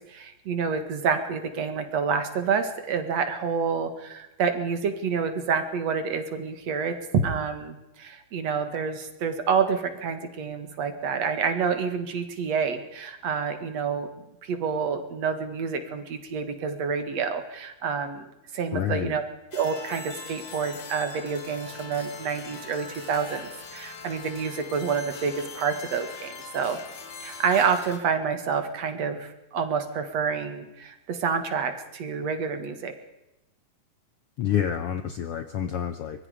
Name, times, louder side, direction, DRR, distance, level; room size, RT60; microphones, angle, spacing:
voice 1, 0.1-14.1 14.4-19.2 19.5-26.8 27.2-32.9, right 6 dB, 60° right, 8 dB, 2.8 m, -28 dB
voice 2, 18.7-19.2 34.4-36.3, left 9 dB, 70° left, 10 dB, 1.4 m, -28 dB
sound 1, 19.5-28.0, left 4 dB, 85° left, 3.9 m, -42 dB
24.5 x 21.0 x 5.1 m, 0.94 s
omnidirectional pair, 3.6 m